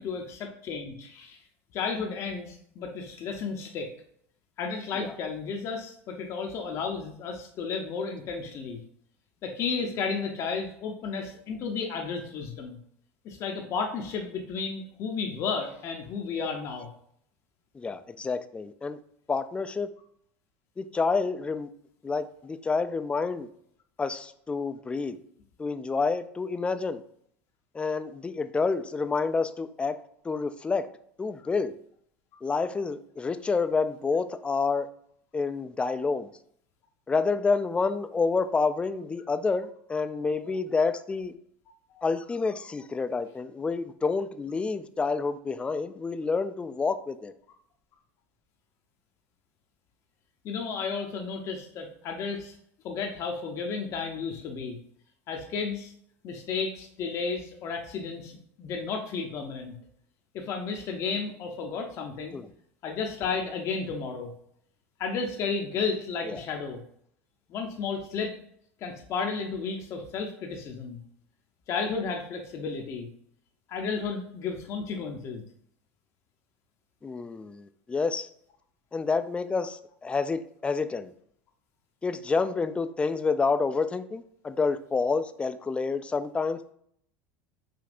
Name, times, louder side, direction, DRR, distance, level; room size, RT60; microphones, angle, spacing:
voice 1, 0.0-1.4 1.7-3.9 4.6-8.8 9.4-12.8 13.2-16.9 41.9-42.0 50.4-52.5 52.8-54.8 55.3-55.9 56.2-59.7 60.3-62.4 62.8-64.3 65.0-66.8 67.5-68.3 68.8-71.0 71.7-73.1 73.7-75.4, left 5 dB, 50° left, 2 dB, 0.7 m, -33 dB
voice 2, 17.7-19.0 19.3-19.9 20.8-21.7 22.0-23.5 24.0-25.2 25.6-27.0 27.7-30.0 30.2-30.9 31.2-31.7 32.4-34.9 35.3-36.3 37.1-41.3 42.0-47.3 62.3-62.5 66.3-66.4 77.0-78.3 78.9-81.1 82.0-86.7, left 4 dB, 15° left, 11 dB, 0.3 m, -28 dB
5.1 x 2.7 x 2.5 m, 0.67 s
hypercardioid pair, 85°, 7 cm